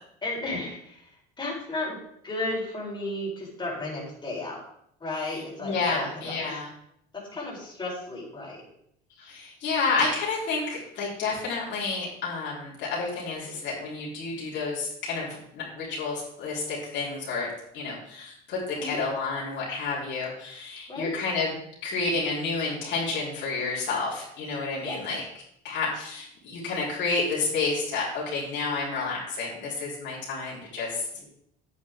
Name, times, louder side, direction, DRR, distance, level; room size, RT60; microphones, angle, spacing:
voice 1, 0.2-1.1 1.4-2.0 2.2-4.6 5.0-6.6 7.1-8.6 18.7-19.0 20.9-21.1 24.8-25.0 31.2-31.3, left 2 dB, 20° left, -4 dB, 4.6 m, -34 dB
voice 2, 5.6-6.7 9.2-15.3 15.5-17.5 17.7-21.5 21.8-25.2 25.6-31.0, left 4 dB, 60° left, -5 dB, 4.1 m, -30 dB
9.3 x 9.3 x 3.7 m, 0.73 s
supercardioid pair, 105°, 21 cm